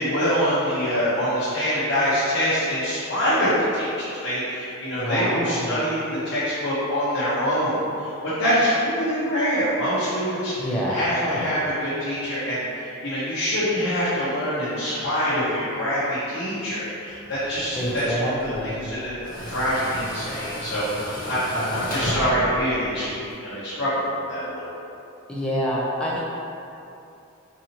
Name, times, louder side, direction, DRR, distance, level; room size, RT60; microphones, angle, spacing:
voice 1, 0.0-10.5 10.9-24.6, equal, 70° left, -11 dB, 0.8 m, -25 dB
voice 2, 4.9-5.8 10.6-11.5 17.7-18.9 21.5-21.9 25.3-26.2, equal, 5° left, -6 dB, 0.5 m, -27 dB
Tools, 17.1-23.3, equal, 45° left, 1.0 m, -34 dB
3.9 x 2.7 x 2.9 m, 2.7 s
head